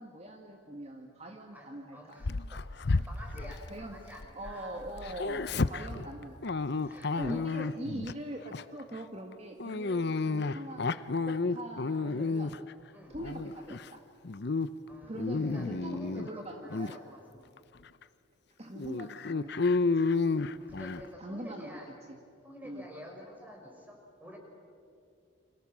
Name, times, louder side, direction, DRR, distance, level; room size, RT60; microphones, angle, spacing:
voice 1, 0.0-2.2 2.9-3.1 3.7-3.9 4.3-6.6 7.2-11.0 11.3-12.5 13.1-14.0 15.1-17.0 18.6-19.7 21.2-21.8 22.6-22.8, right 1 dB, 30° right, 3 dB, 1.8 m, -42 dB
voice 2, 1.5-5.2 5.9-6.0 6.8-7.5 12.9-13.2 14.9-17.6 20.4-21.9 22.4-24.4, equal, 10° right, 1 dB, 5.3 m, -49 dB
Dog, 2.2-4.5 4.8-8.1 8.5-8.8 9.6-12.7 13.1-13.9 14.2-14.7 15.0-16.3 16.7-16.9 17.6-17.7 18.0-18.1 18.8-21.0, left 3 dB, 55° left, 0.7 m, -31 dB
29.5 x 26.5 x 7.4 m, 2.4 s
head